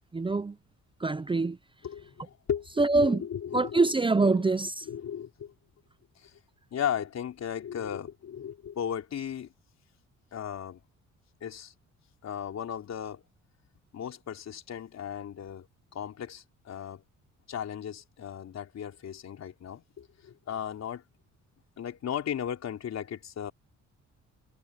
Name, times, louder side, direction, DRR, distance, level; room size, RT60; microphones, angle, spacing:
voice 1, 0.1-0.6 1.0-1.6 2.8-3.2 3.5-4.9, right 3 dB, 15° right, 0.7 m, -24 dB
voice 2, 1.8-3.9 4.3-4.4 4.9-5.5 6.2-6.4 6.7-9.5 10.3-10.8 11.4-11.7 12.2-13.2 13.9-15.7 15.9-17.0 17.5-21.0 21.8-23.5, left 9 dB, 60° left, 3.9 m, -36 dB
cardioid pair, 90°, 30 cm